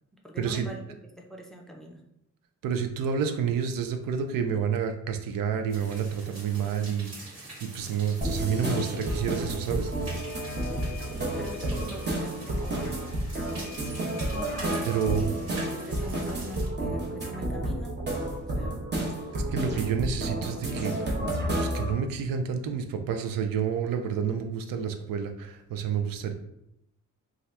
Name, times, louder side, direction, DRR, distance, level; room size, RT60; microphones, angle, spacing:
voice 1, 0.2-0.8 1.2-2.0 11.3-13.1 15.2-18.0 18.5-18.9, equal, ahead, 1 dB, 0.5 m, -42 dB
voice 2, 2.6-9.9 14.8-15.2 19.5-20.9 21.6-26.3, right 7 dB, 80° right, 6 dB, 0.5 m, -29 dB
sound 1, 5.7-16.7, right 2 dB, 50° right, 1.3 m, -45 dB
sound 2, 8.2-21.9, right 1 dB, 30° right, 0.8 m, -31 dB
sound 3, 10.2-15.2, left 11 dB, 65° left, 0.5 m, -47 dB
2.7 x 2.4 x 3.2 m, 0.81 s
cardioid pair, 85°, 33 cm